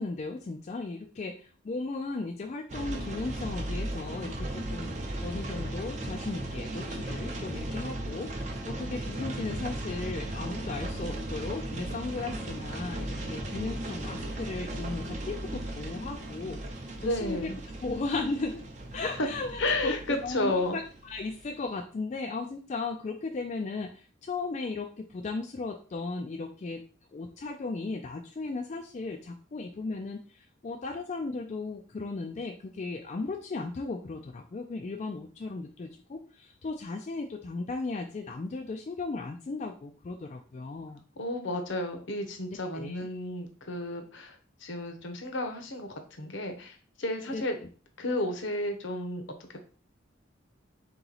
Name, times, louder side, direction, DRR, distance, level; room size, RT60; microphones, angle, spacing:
voice 1, 0.0-4.9 5.2-16.6 17.0-17.5 17.8-18.6 18.9-26.8 27.1-41.0 42.7-43.1 47.3-47.5, left 3 dB, 35° left, 4 dB, 0.3 m, -36 dB
sound 1, 2.7-21.7, right 1 dB, 35° right, 0.6 m, -36 dB
voice 2, 17.0-17.6 19.6-20.8 41.2-47.6 48.0-49.2 49.5-49.6, left 1 dB, 65° left, 6 dB, 0.8 m, -32 dB
3.8 x 3.0 x 3.9 m, 0.39 s
head